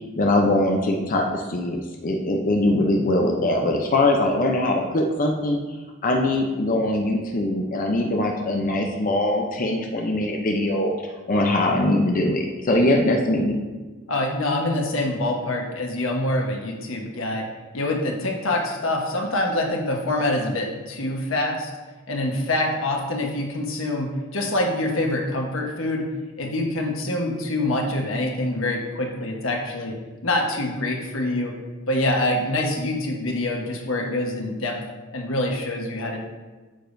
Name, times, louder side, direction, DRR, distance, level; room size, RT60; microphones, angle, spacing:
voice 1, 0.2-5.6 6.0-10.9 11.3-13.6, left 1 dB, 45° left, 1 dB, 0.6 m, -22 dB
voice 2, 14.1-17.5 17.7-21.7 22.1-26.1 26.4-30.0 30.2-31.5 31.9-34.8 35.1-36.2, left 1 dB, 90° left, 1 dB, 1.2 m, -25 dB
8.9 x 7.2 x 2.7 m, 1.3 s
head